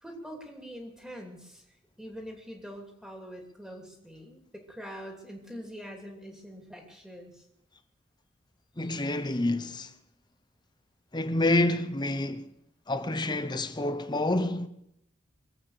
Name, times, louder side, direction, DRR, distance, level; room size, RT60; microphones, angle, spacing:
voice 1, 0.0-1.6 2.0-7.4, equal, 5° right, 2.9 m, -44 dB
voice 2, 8.8-9.9 11.1-12.5 12.9-14.7, left 1 dB, 20° left, 0.9 m, -28 dB
24.0 x 8.6 x 6.6 m
head